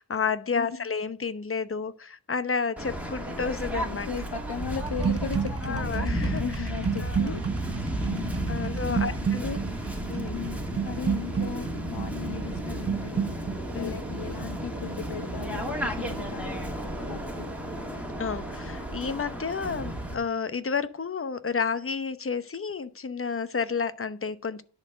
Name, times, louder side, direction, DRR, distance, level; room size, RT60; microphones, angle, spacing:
voice 1, 0.0-4.1 5.6-6.4 7.0-7.4 8.5-9.4 10.1-10.4 13.7-13.9 18.2-24.6, left 5 dB, 30° left, 0.8 m, -31 dB
voice 2, 0.5-0.9 3.9-7.4 8.0-8.5 8.9-9.7 10.3-13.4 13.7-17.5, left 7 dB, 70° left, 1.4 m, -37 dB
Waves surf, 2.8-20.1, right 1 dB, 5° right, 2.2 m, -33 dB
sound 1, 4.8-16.7 17.0-17.4, right 7 dB, 35° right, 0.7 m, -33 dB
10.5 x 4.5 x 7.6 m
wide cardioid pair, 95°, 41 cm